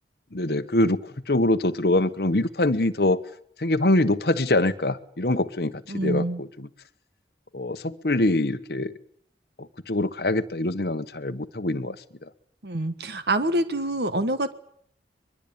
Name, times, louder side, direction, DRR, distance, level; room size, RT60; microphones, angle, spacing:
voice 1, 0.3-3.2 3.6-6.7 7.5-8.9 9.6-12.0 12.2-12.3, left 1 dB, 60° left, 10 dB, 1.1 m, -24 dB
voice 2, 5.9-6.4 12.6-14.5, right 1 dB, 65° right, 12 dB, 1.4 m, -26 dB
23.0 x 22.5 x 8.7 m, 0.67 s
head